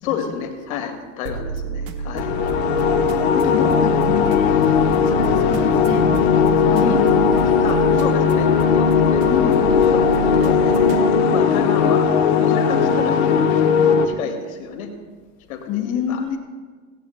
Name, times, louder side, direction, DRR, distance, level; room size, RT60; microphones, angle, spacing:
voice 1, 0.0-2.3 6.8-7.0 7.6-10.1 10.4-13.6 14.0-14.9 15.5-16.4, left 7 dB, 90° left, 3 dB, 2.4 m, -29 dB
sound 1, 1.3-11.0, right 5 dB, 75° right, 1.5 m, -30 dB
sound 2, 2.1-14.0, left 6 dB, 50° left, 1.1 m, -17 dB
voice 2, 3.3-4.6 5.0-6.0 6.6-6.9 7.6-8.1 9.2-9.8 15.7-16.4, left 9 dB, 20° left, 3 dB, 0.6 m, -27 dB
17.5 x 17.0 x 2.2 m, 1.4 s
supercardioid pair, 175°, 41 cm